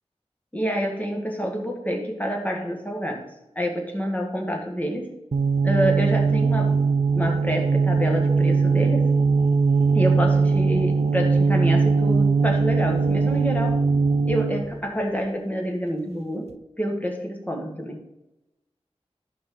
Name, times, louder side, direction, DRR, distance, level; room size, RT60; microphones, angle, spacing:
voice 1, 0.5-3.3 3.6-5.2 5.6-6.8 7.1-9.1 9.9-13.9 14.2-18.1, equal, 15° left, 1 dB, 1.9 m, -27 dB
sound 1, 5.3-14.7, right 4 dB, 70° right, 0.5 m, -20 dB
12.5 x 5.6 x 3.9 m, 0.94 s
wide cardioid pair, 65°, 11 cm